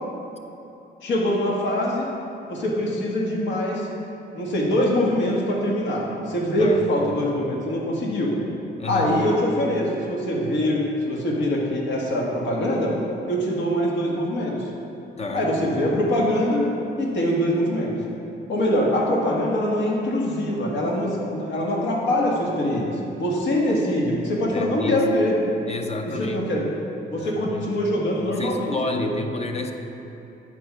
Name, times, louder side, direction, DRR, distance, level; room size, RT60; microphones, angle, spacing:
voice 1, 1.0-2.1 2.5-3.9 4.3-8.3 8.9-12.9 13.3-14.7 15.3-16.6 17.0-17.9 18.5-25.4 26.1-26.6 27.1-28.7 29.0-29.1, left 1 dB, 70° left, -2 dB, 1.6 m, -23 dB
voice 2, 8.8-9.1 15.2-15.8 24.5-25.0 25.7-26.5 27.1-27.7 28.3-29.7, left 2 dB, 35° left, 4 dB, 0.7 m, -30 dB
8.3 x 4.6 x 5.8 m, 2.9 s
cardioid pair, 90°, 20 cm